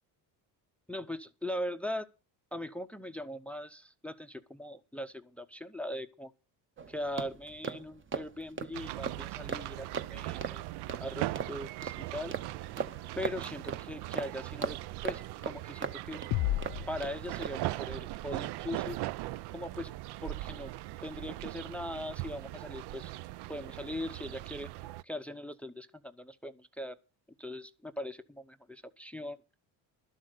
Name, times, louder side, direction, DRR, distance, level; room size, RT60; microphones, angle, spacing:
voice 1, 0.9-2.1 2.5-6.3 6.9-10.6 11.0-12.3 13.2-14.8 15.0-16.2 16.9-19.0 19.5-19.9 20.2-20.7 21.0-23.1 23.5-24.7 25.0-27.0 27.4-29.4, left 1 dB, 5° left, 0.6 m, -40 dB
sound 1, 6.8-17.1 17.4-17.7, right 5 dB, 30° right, 0.9 m, -40 dB
sound 2, 8.7-25.0, right 17 dB, 70° right, 0.5 m, -40 dB
sound 3, 16.3-18.0, left 16 dB, 60° left, 0.5 m, -34 dB
12.0 x 7.8 x 6.6 m
cardioid pair, 115°, 42 cm